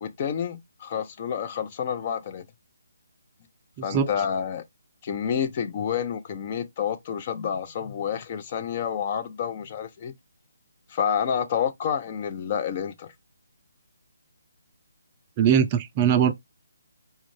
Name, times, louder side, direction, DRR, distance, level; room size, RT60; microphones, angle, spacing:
voice 1, 0.0-2.4 3.8-4.6 5.0-10.1 10.9-13.1, left 8 dB, 35° left, 0.6 m, -29 dB
voice 2, 3.8-4.1 15.4-16.3, right 8 dB, 25° right, 0.4 m, -21 dB
4.3 x 2.4 x 3.1 m
figure-of-eight pair, 145°, 0 cm